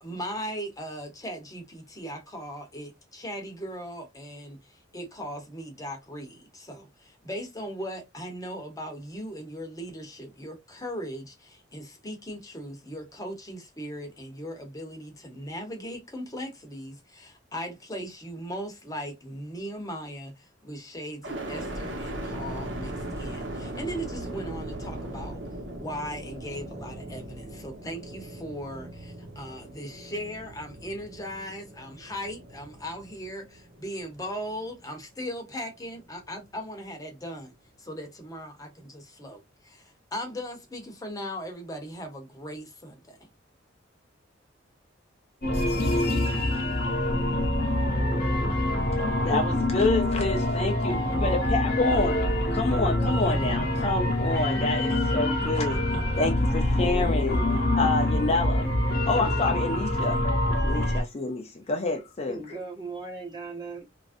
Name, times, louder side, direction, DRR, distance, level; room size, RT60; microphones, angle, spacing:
voice 1, 0.0-25.4 25.8-37.5 37.8-43.3, equal, 20° left, 0.8 m, -38 dB
sound 1, 21.2-35.2 35.7-36.5, right 1 dB, 70° right, 0.9 m, -39 dB
sound 2, 45.4-61.0, left 1 dB, 55° left, 0.8 m, -25 dB
voice 2, 49.2-52.2 52.5-55.8 56.2-57.4 57.8-58.7 59.1-60.2 60.6-62.6, left 2 dB, 35° left, 0.5 m, -28 dB
voice 3, 62.3-63.8, right 3 dB, 25° right, 0.9 m, -38 dB
3.1 x 2.5 x 2.5 m
head